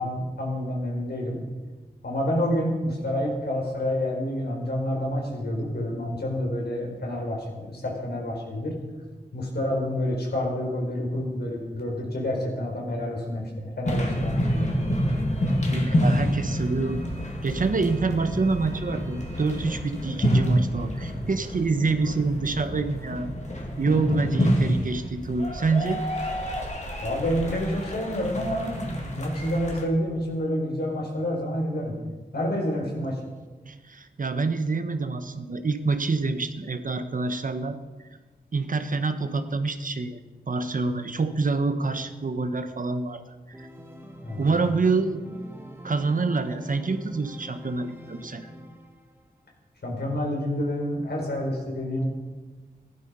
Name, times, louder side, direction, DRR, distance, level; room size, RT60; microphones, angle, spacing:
voice 1, 0.0-1.4 2.0-8.8 9.3-14.7 27.0-32.0 32.3-33.2 44.2-44.5 49.8-52.1, left 1 dB, 75° left, 0 dB, 4.2 m, -28 dB
sound 1, 13.8-29.8, equal, 45° left, 2.5 m, -28 dB
voice 2, 15.7-17.0 17.4-23.3 23.8-26.0 33.7-37.8 38.5-40.2 40.5-43.2 43.6-43.7 44.4-45.2 45.8-48.5, right 4 dB, 55° right, 9 dB, 1.1 m, -26 dB
Organ, 43.5-49.3, equal, 15° right, 1.4 m, -44 dB
16.0 x 11.5 x 5.5 m, 1.3 s
wide cardioid pair, 95°, 17 cm